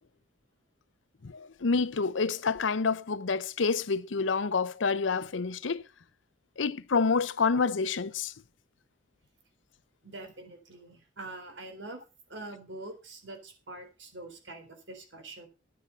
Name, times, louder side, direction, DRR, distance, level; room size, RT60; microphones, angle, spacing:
voice 1, 1.2-5.8 6.6-8.3, left 4 dB, 85° left, 0.7 m, -28 dB
voice 2, 10.0-12.0 12.3-15.5, right 2 dB, 80° right, 4.0 m, -44 dB
10.5 x 10.0 x 5.4 m
head